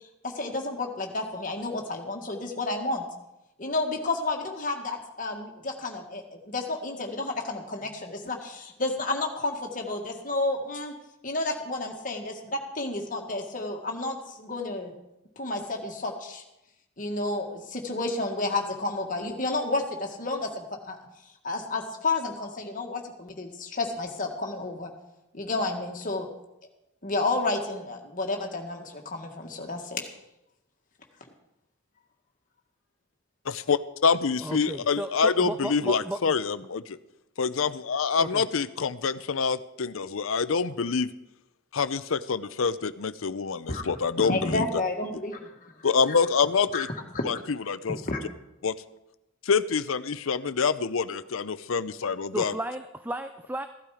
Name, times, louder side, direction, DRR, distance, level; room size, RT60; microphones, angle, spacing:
voice 1, 0.2-3.0 3.6-10.9 11.2-14.9 15.3-16.4 17.0-21.0 21.4-24.9 25.3-26.3 27.0-30.1 43.7-43.8 44.2-45.7 46.7-46.9 47.1-47.3 48.0-48.2, left 2 dB, 40° left, 2 dB, 1.8 m, -31 dB
voice 2, 33.5-37.0 37.4-41.1 41.7-44.6 45.8-46.9 47.2-47.4 47.7-48.0 48.6-48.8 49.5-52.5, left 5 dB, 75° left, 14 dB, 0.6 m, -26 dB
voice 3, 34.4-36.4 38.2-38.4 52.3-53.7, right 1 dB, 10° right, 9 dB, 0.4 m, -34 dB
15.5 x 12.0 x 5.0 m, 0.92 s
head